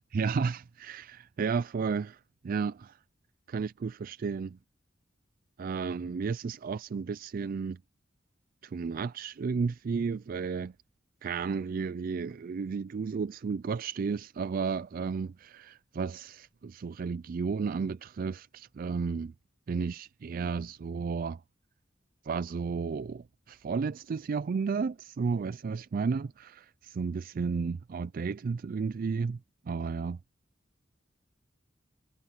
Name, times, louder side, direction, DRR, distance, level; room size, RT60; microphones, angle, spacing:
voice 1, 0.1-3.0 3.5-4.6 5.6-7.8 8.6-10.7 11.2-19.3 19.7-21.4 22.2-29.4 29.7-30.2, right 5 dB, 50° right, 0.4 m, -33 dB
head